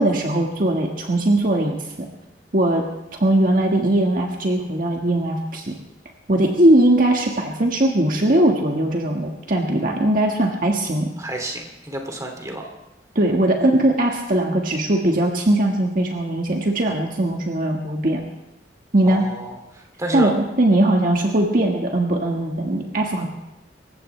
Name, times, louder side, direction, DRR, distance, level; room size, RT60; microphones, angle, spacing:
voice 1, 0.0-2.1 2.5-2.8 3.2-5.7 6.3-11.1 13.1-18.3 18.9-19.2 20.1-23.3, right 1 dB, 50° right, 1 dB, 1.6 m, -20 dB
voice 2, 11.2-12.7 19.0-20.3, right 1 dB, 20° right, 2 dB, 2.6 m, -30 dB
27.0 x 15.0 x 3.3 m, 0.91 s
head